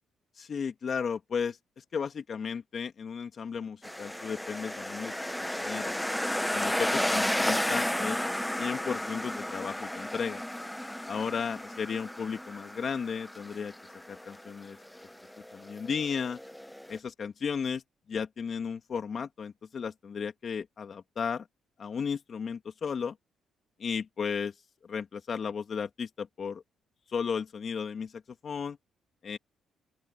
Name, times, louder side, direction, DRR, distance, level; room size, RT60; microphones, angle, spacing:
voice 1, 0.4-5.9 6.5-8.2 8.5-10.4 11.1-13.7 14.1-14.8 15.5-16.4 16.9-17.8 18.1-21.5 21.8-23.2 23.8-24.5 24.8-26.6 27.1-28.8 29.2-29.4, left 6 dB, 50° left, 2.7 m, -34 dB
sound 1, 3.8-17.0, left 1 dB, 5° left, 1.1 m, -33 dB
open air
cardioid pair, 90°, 0 cm